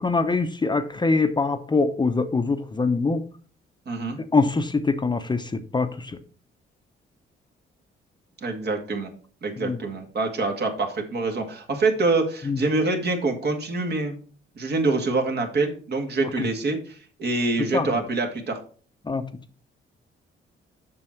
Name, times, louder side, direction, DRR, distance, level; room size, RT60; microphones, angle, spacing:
voice 1, 0.0-3.2 4.3-6.1 9.6-9.8 12.5-12.6 16.4-16.5 17.7-17.9 19.1-19.2, left 3 dB, 20° left, 0.7 m, -23 dB
voice 2, 3.9-4.2 8.4-9.1 9.4-14.1 14.6-18.6, right 3 dB, 55° right, 2.0 m, -25 dB
7.5 x 6.1 x 4.5 m
cardioid pair, 90°, 20 cm